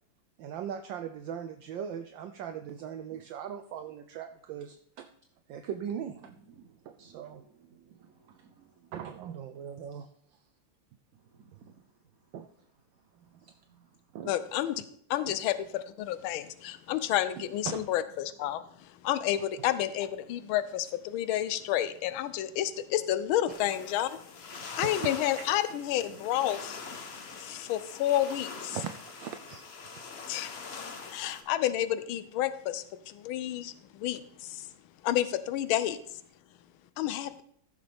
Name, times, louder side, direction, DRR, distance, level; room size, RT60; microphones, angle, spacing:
voice 1, 0.4-5.1 5.5-6.3 6.8-7.4 8.0-8.1 8.9-10.1 12.3-12.5 13.2-13.5 14.1-14.3 15.2-15.3 17.4-17.9 24.5-24.9 27.3-27.4 28.7-30.0, right 8 dB, 75° right, 1.2 m, -40 dB
voice 2, 6.2-8.9 11.1-11.7 13.4-14.0 26.1-26.2 27.1-27.4, right 6 dB, 55° right, 1.1 m, -59 dB
voice 3, 14.2-14.8 15.1-24.2 24.8-26.8 27.4-28.8 30.3-30.5 31.1-34.7 35.0-36.0 37.0-37.4, left 12 dB, 75° left, 1.4 m, -30 dB
sound 1, 23.5-31.4, left 5 dB, 60° left, 0.6 m, -43 dB
15.0 x 6.7 x 3.4 m
omnidirectional pair, 2.4 m